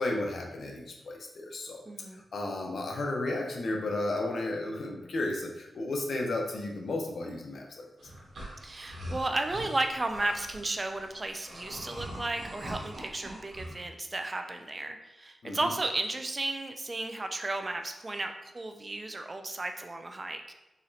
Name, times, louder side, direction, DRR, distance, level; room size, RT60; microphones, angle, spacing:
voice 1, 0.0-8.1 15.4-15.7, left 2 dB, 70° left, 1 dB, 0.7 m, -33 dB
voice 2, 1.9-2.2 8.6-20.5, right 2 dB, 30° right, 6 dB, 0.4 m, -34 dB
sound 1, 8.0-13.7, equal, 75° right, 1.2 m, -43 dB
4.1 x 2.9 x 2.7 m, 0.97 s
cardioid pair, 85°, 0 cm